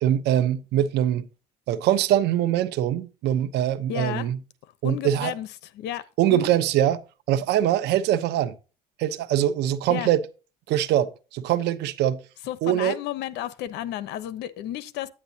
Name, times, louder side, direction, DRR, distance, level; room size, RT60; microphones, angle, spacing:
voice 1, 0.0-1.3 1.7-4.4 4.8-5.3 6.2-7.0 7.3-8.5 9.0-10.2 10.7-12.2 12.6-13.0, right 11 dB, 80° right, 0.9 m, -23 dB
voice 2, 3.9-4.3 4.8-5.5 5.7-6.6 9.9-10.1 12.5-15.1, left 12 dB, 85° left, 1.0 m, -32 dB
9.7 x 9.4 x 2.8 m
cardioid pair, 110°, 17 cm